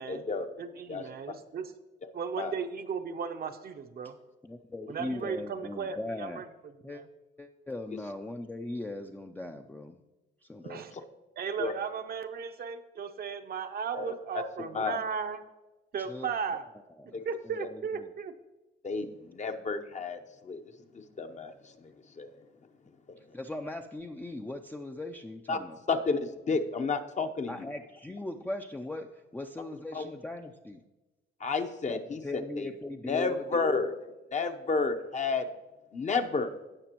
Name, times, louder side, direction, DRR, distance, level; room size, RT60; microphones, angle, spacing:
voice 1, 0.1-0.5 0.9-1.0 2.4-2.5 5.0-5.1 10.6-10.8 11.6-11.7 13.9-14.1 14.7-15.0 17.1-17.3 17.6-17.7 18.8-20.6 20.9-21.5 21.8-21.9 22.2-22.3 25.5-25.6 25.9-27.7 29.9-30.1 31.4-32.2 32.6-32.7 33.1-33.9 34.3-35.5 35.9-36.5, left 4 dB, 35° left, 7 dB, 0.8 m, -31 dB
voice 2, 0.6-1.7 2.1-4.2 4.9-6.5 6.8-7.1 10.7-10.9 11.4-15.4 15.9-16.7 17.0-18.4, right 6 dB, 50° right, 7 dB, 0.7 m, -36 dB
voice 3, 4.4-6.4 6.8-7.0 7.4-10.0 10.4-10.6 16.1-16.3 17.0-17.2 17.4-18.1 23.2-25.8 27.5-30.8 31.8-33.6, left 1 dB, 10° left, 3 dB, 0.4 m, -39 dB
16.5 x 5.9 x 3.0 m, 1.1 s
cardioid pair, 90°, 20 cm